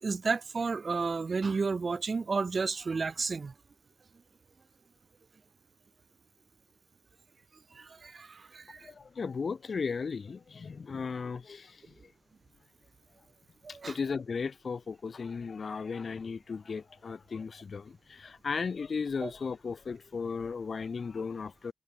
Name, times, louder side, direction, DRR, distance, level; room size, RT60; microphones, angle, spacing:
voice 1, 0.0-3.5 7.7-8.9 13.6-13.9 19.2-19.3, right 4 dB, 55° right, 5.1 m, -32 dB
voice 2, 8.8-11.9 13.7-21.7, left 5 dB, 65° left, 1.6 m, -36 dB
wide cardioid pair, 80°, 0 cm